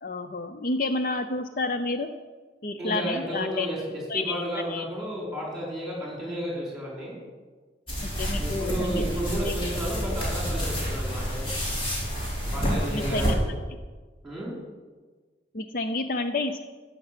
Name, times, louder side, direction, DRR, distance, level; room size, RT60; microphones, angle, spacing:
voice 1, 0.0-2.1 2.6-3.7 4.1-4.4 4.7-4.9 8.2-9.0 9.4-9.5 12.6-13.3 15.5-16.7, left 2 dB, 50° left, 8 dB, 0.5 m, -30 dB
voice 2, 2.8-7.2 8.3-11.4 12.5-13.3 14.2-14.5, right 1 dB, 5° right, -4 dB, 4.2 m, -32 dB
sound 1, 7.9-13.3, equal, 30° left, 3.8 m, -29 dB
14.0 x 5.9 x 8.1 m, 1.4 s
head